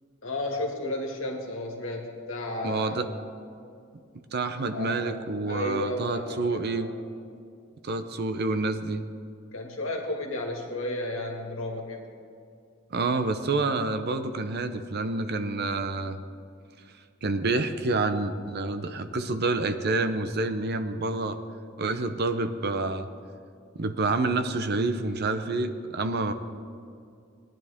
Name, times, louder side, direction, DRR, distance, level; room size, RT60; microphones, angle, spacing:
voice 1, 0.2-3.0 4.7-7.0 9.5-12.0, left 1 dB, 75° left, 1 dB, 2.0 m, -33 dB
voice 2, 2.6-3.1 4.3-6.9 7.8-9.0 12.9-16.2 17.2-21.4 21.8-23.1 23.7-26.3, right 3 dB, 55° right, 9 dB, 0.7 m, -28 dB
18.5 x 10.5 x 3.6 m, 2.4 s
head